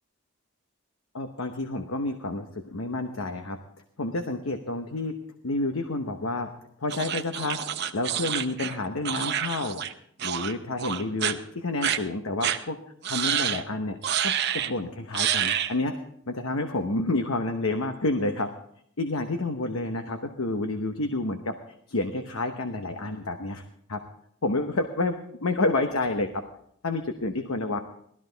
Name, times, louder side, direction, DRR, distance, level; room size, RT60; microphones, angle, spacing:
voice 1, 1.1-3.6 4.0-5.1 5.4-6.5 6.8-7.6 7.9-9.8 10.2-12.8 13.1-14.0 14.2-16.0 16.3-18.5 19.0-21.6 21.9-23.6 23.9-24.0 24.4-26.4 26.8-27.8, left 2 dB, 85° left, 6 dB, 1.0 m, -29 dB
sound 1, 6.9-9.9 10.2-10.5 10.8-11.3 11.8-12.0 12.4-12.6 13.0-13.6 14.0-14.7 15.1-15.7, right 9 dB, 55° right, 0.8 m, -28 dB
18.5 x 13.5 x 4.0 m, 0.68 s
head